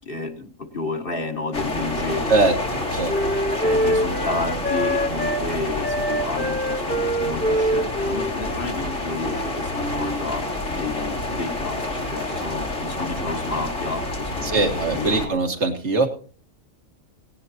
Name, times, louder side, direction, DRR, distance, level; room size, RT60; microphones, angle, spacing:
voice 1, 0.0-2.5 3.6-15.4, left 3 dB, 45° left, 4 dB, 1.8 m, -31 dB
sound 1, 1.5-15.3, left 2 dB, 70° left, 3.1 m, -28 dB
Wind instrument woodwind instrument, 1.5-5.4 5.8-10.2, equal, 10° left, 0.9 m, -26 dB
voice 2, 14.4-16.1, right 3 dB, 60° right, 4 dB, 2.0 m, -21 dB
17.5 x 17.5 x 2.9 m, 0.41 s
omnidirectional pair, 1.3 m